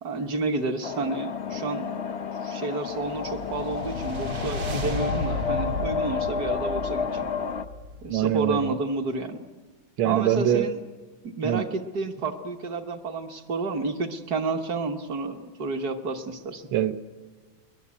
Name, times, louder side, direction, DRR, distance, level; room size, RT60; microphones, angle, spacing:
voice 1, 0.0-2.1 2.4-7.3 8.0-9.4 10.0-10.8 11.2-16.7, right 3 dB, 55° right, 4 dB, 1.7 m, -30 dB
sound 1, 0.8-7.6, left 6 dB, 55° left, 0.7 m, -31 dB
sound 2, 2.9-8.3, left 2 dB, 90° right, 3.5 m, -34 dB
voice 2, 8.1-8.7 10.0-10.7 11.4-11.6 16.7-17.0, right 10 dB, 70° right, 10 dB, 1.6 m, -24 dB
21.5 x 20.5 x 8.4 m, 1.3 s
omnidirectional pair, 2.2 m